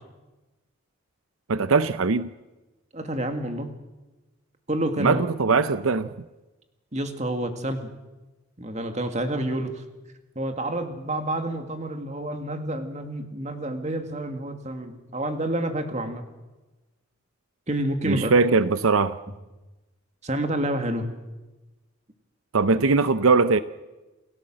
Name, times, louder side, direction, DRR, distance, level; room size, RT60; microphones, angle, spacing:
voice 1, 1.5-2.3 5.0-6.1 18.1-19.2 22.5-23.6, right 4 dB, 85° right, 13 dB, 0.7 m, -20 dB
voice 2, 2.9-3.7 4.7-5.2 6.9-7.9 8.6-9.8 10.4-16.2 17.7-18.3 20.2-21.1, right 1 dB, 35° right, 6 dB, 2.2 m, -29 dB
29.0 x 17.0 x 7.6 m, 1.1 s
head